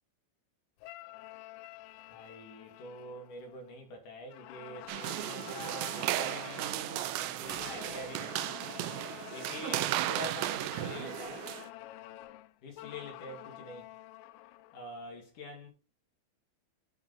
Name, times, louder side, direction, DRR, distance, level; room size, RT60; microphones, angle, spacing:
sound 1, 0.8-3.9 4.3-6.9 7.4-10.1 10.7-14.9, left 15 dB, 85° left, 2.5 m, -48 dB
voice 1, 2.1-8.6 9.3-11.5 12.6-13.9 14.7-15.7, left 2 dB, 55° left, 2.6 m, -45 dB
sound 2, 4.9-11.7, right 14 dB, 85° right, 2.5 m, -35 dB
7.7 x 6.0 x 4.0 m
omnidirectional pair, 5.7 m